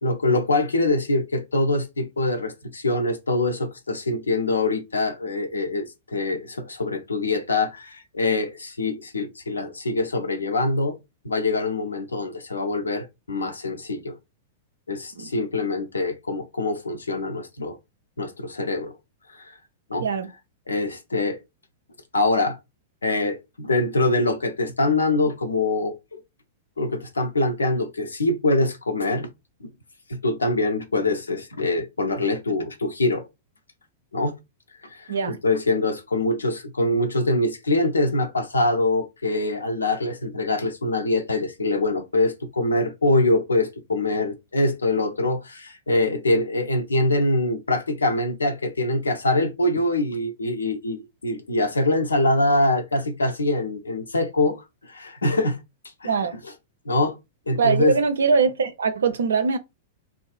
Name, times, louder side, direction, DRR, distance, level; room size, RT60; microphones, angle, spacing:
voice 1, 0.0-11.0 11.2-14.1 14.9-17.8 18.2-18.9 19.3-19.5 19.9-20.1 20.7-21.4 22.1-22.6 23.0-26.2 26.8-29.3 29.6-29.7 30.1-33.3 34.1-34.4 34.8-55.6 56.0-56.1 56.9-57.2 57.5-57.9, left 2 dB, 80° left, 0.5 m, -24 dB
voice 2, 35.1-35.4 56.0-56.3 57.6-59.6, right 5 dB, 70° right, 0.4 m, -22 dB
2.5 x 2.3 x 2.4 m
figure-of-eight pair, 100°, 0 cm